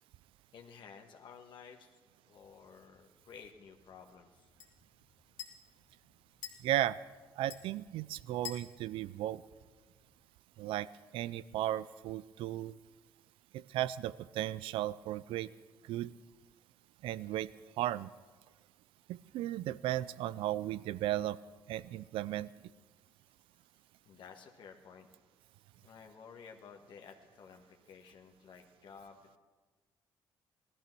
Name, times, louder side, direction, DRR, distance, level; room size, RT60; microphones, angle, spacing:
voice 1, 0.5-1.9 2.2-4.5 24.0-25.1 25.8-29.4, left 6 dB, 65° left, 3 dB, 1.6 m, -54 dB
sound 1, 2.4-10.2, left 9 dB, 90° left, 2.1 m, -53 dB
voice 2, 6.6-7.0 7.4-9.4 10.6-10.9 11.1-12.8 13.5-15.5 15.9-16.1 17.0-17.5 17.8-18.1 19.1-21.4 21.7-22.5, right 14 dB, 80° right, 19 dB, 0.5 m, -35 dB
17.0 x 13.5 x 6.1 m, 1.4 s
supercardioid pair, 75°, 9 cm